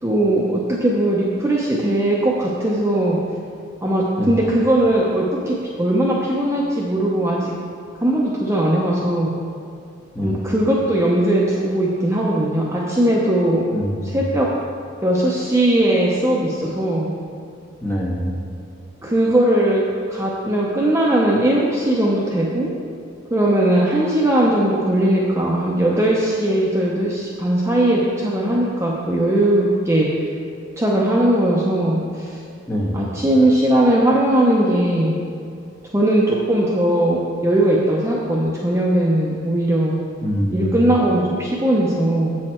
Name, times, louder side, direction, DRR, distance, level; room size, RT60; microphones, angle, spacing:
voice 1, 0.0-3.2 3.8-7.5 8.0-9.3 10.2-13.6 14.0-14.5 15.0-17.1 19.0-19.8 20.1-22.7 23.3-30.1 30.8-32.4 32.9-35.1 35.9-40.0 40.5-42.4, right 1 dB, 15° right, -4 dB, 0.6 m, -19 dB
voice 2, 13.7-14.2 17.8-18.3 32.7-32.9 40.2-40.7, equal, 10° left, -5 dB, 1.5 m, -24 dB
7.8 x 6.4 x 4.3 m, 2.4 s
head